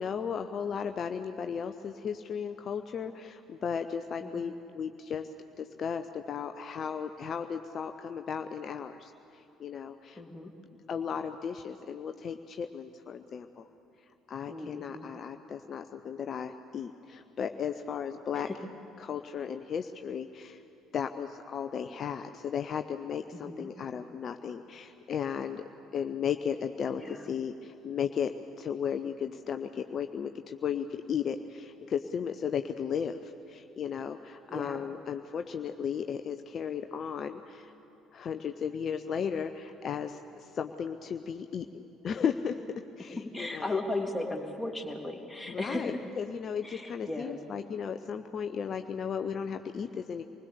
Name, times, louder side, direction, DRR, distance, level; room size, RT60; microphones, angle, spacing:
voice 1, 0.0-5.3 5.6-10.2 10.9-13.7 14.3-18.5 19.0-20.6 20.9-25.6 25.9-37.7 38.1-43.8 45.5-50.2, left 7 dB, 45° left, 8 dB, 0.7 m, -35 dB
voice 2, 4.2-4.5 10.2-10.5 14.5-15.1 18.3-18.6 23.3-23.7 26.9-27.3 34.5-34.9 43.2-46.0 46.6-47.4, left 2 dB, 10° left, 2 dB, 2.7 m, -36 dB
25.5 x 20.5 x 6.9 m, 2.8 s
figure-of-eight pair, 50°, 0 cm